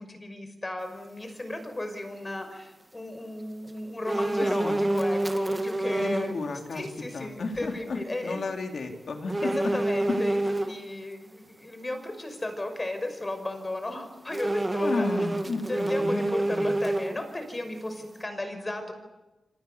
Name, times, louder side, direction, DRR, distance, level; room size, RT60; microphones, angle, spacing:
voice 1, 0.0-6.3 6.7-8.4 9.4-10.4 10.7-15.1 15.7-18.9, left 1 dB, 20° left, 7 dB, 5.7 m, -34 dB
sound 1, 4.1-6.3 6.8-6.9 9.3-10.7 14.3-17.4 17.8-17.9, right 1 dB, 20° right, 2.2 m, -27 dB
voice 2, 4.4-4.9 6.0-6.9 7.1-9.7 10.1-10.2 14.8-16.8, left 3 dB, 60° left, 3 dB, 4.3 m, -33 dB
28.0 x 26.0 x 7.0 m, 1.1 s
wide cardioid pair, 105°, 0 cm